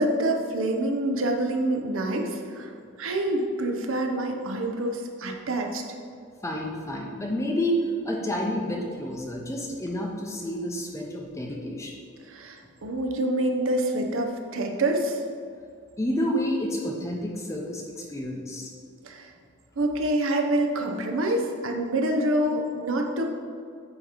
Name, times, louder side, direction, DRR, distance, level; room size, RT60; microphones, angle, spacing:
voice 1, 0.0-2.7 3.0-5.8 12.2-15.2 19.0-19.3 19.8-23.3, right 1 dB, 65° right, 3 dB, 0.7 m, -26 dB
voice 2, 6.4-12.0 16.0-18.7, equal, 15° left, -1 dB, 0.6 m, -29 dB
8.7 x 2.9 x 4.9 m, 2.3 s
head